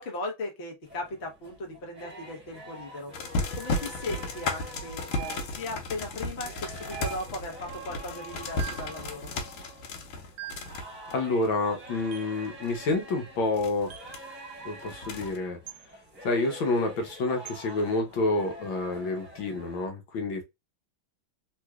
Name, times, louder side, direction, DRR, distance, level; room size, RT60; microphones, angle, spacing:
voice 1, 0.0-3.1 3.5-9.3, left 2 dB, 45° left, 0.9 m, -37 dB
sound 1, 0.8-19.9, right 1 dB, 5° right, 1.1 m, -46 dB
sound 2, 3.1-12.0 12.5-12.9 13.6-14.2 14.8-15.4, left 2 dB, 85° left, 1.6 m, -34 dB
sound 3, 5.1-5.8 6.9-7.6 8.6-9.0 10.4-10.8 12.1-12.4 13.9-14.2 15.7-15.9 17.5-17.6, right 13 dB, 80° right, 1.4 m, -42 dB
voice 2, 11.1-13.9 14.6-15.6 16.2-20.4, left 2 dB, 70° left, 1.5 m, -28 dB
3.5 x 3.0 x 2.3 m
omnidirectional pair, 2.3 m